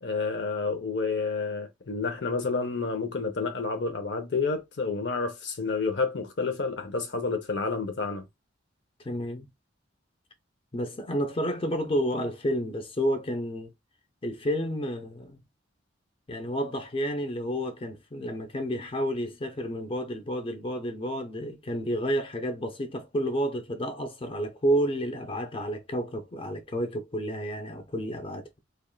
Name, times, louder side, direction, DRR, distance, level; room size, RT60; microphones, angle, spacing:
voice 1, 0.0-8.2, left 4 dB, 65° left, 0.7 m, -29 dB
voice 2, 9.0-9.5 10.7-13.7 14.2-15.4 16.3-28.6, equal, 30° left, 0.5 m, -30 dB
3.5 x 2.3 x 2.3 m
head